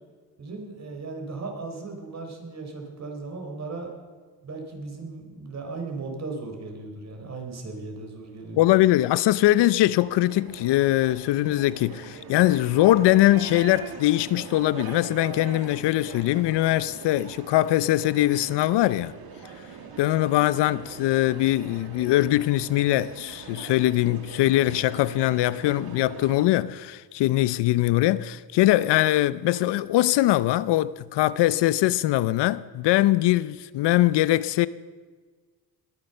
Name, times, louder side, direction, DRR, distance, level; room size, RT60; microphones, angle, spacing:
voice 1, 0.4-3.9 4.4-8.6, right 3 dB, 40° right, 3.9 m, -36 dB
sound 1, 8.5-26.5, right 6 dB, 60° right, 1.9 m, -42 dB
voice 2, 8.6-19.1 20.0-34.7, left 15 dB, 80° left, 0.6 m, -22 dB
20.5 x 9.6 x 6.7 m
cardioid pair, 95°, 41 cm